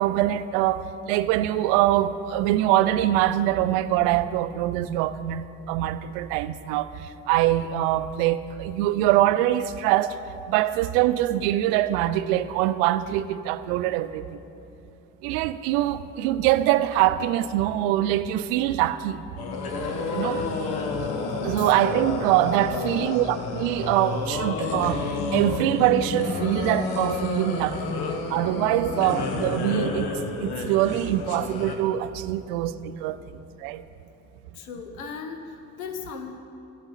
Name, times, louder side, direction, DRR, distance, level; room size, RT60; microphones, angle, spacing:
voice 1, 0.0-6.9 7.3-10.1 10.5-14.3 15.2-19.2 20.1-20.4 21.4-28.0 28.3-30.1 30.4-33.2 33.6-33.8, right 13 dB, 75° right, 14 dB, 0.5 m, -23 dB
sound 1, 19.4-31.8, left 3 dB, 65° left, 1.2 m, -30 dB
voice 2, 22.7-23.2 28.1-28.3 29.4-29.7 32.3-32.5 33.1-33.4 34.5-36.4, left 6 dB, 85° left, 6 dB, 0.8 m, -39 dB
13.0 x 11.5 x 4.0 m, 2.6 s
figure-of-eight pair, 40°, 41 cm